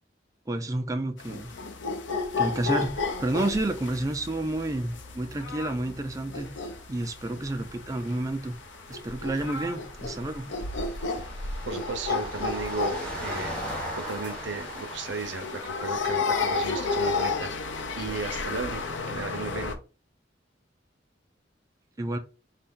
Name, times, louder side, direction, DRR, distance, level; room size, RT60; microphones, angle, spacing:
voice 1, 0.5-1.6 2.4-6.5 6.9-8.6 8.9-10.5 22.0-22.2, right 1 dB, 20° right, 0.4 m, -30 dB
sound 1, 1.2-19.7, left 4 dB, 85° left, 0.7 m, -33 dB
sound 2, 2.7-19.0, equal, 5° left, 1.4 m, -42 dB
voice 2, 11.6-13.5 14.0-19.8, right 4 dB, 80° right, 0.9 m, -35 dB
4.2 x 2.8 x 3.7 m
head